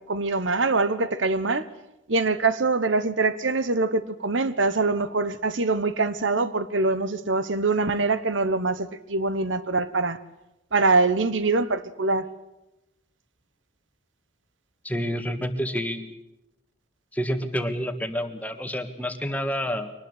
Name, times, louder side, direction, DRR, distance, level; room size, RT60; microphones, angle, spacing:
voice 1, 0.1-1.7 2.1-10.2 10.7-12.3, right 3 dB, 75° right, 1.2 m, -24 dB
voice 2, 14.8-16.2 17.1-19.9, equal, 10° left, 1.7 m, -29 dB
24.0 x 19.5 x 8.2 m
head